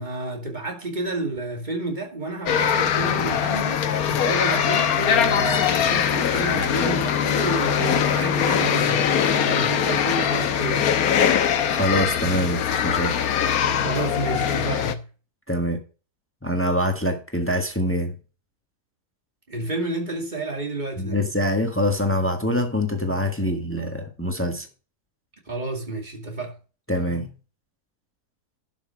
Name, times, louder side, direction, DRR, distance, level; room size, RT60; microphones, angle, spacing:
voice 1, 0.0-10.9 13.7-15.1 19.5-21.2 25.5-26.6, right 2 dB, 30° right, 2.5 m, -30 dB
sound 1, 2.5-14.9, left 8 dB, 70° left, 1.3 m, -22 dB
voice 2, 11.7-13.1 15.5-15.8 16.4-18.1 21.0-24.7 26.9-27.3, equal, 10° left, 1.5 m, -24 dB
11.5 x 6.1 x 4.7 m
omnidirectional pair, 1.7 m